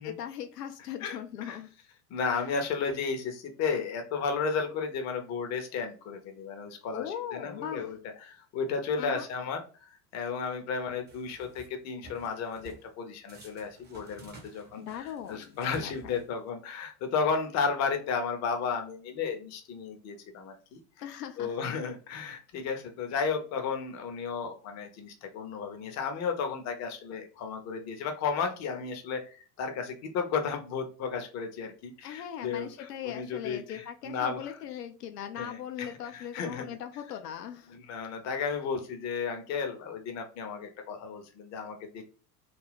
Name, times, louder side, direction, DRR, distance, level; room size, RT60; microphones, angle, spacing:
voice 1, 0.0-1.7 6.9-7.9 9.0-9.3 14.8-16.2 21.0-21.6 32.0-37.8, left 9 dB, 80° left, 6 dB, 0.6 m, -39 dB
voice 2, 2.1-20.8 21.4-34.6 35.4-36.8 37.7-42.1, left 5 dB, 35° left, 5 dB, 0.7 m, -33 dB
sound 1, 11.1-11.7 12.0-12.9 13.3-16.5, right 2 dB, 20° right, 0.7 m, -52 dB
2.5 x 2.2 x 3.3 m, 0.38 s
figure-of-eight pair, 80°, 47 cm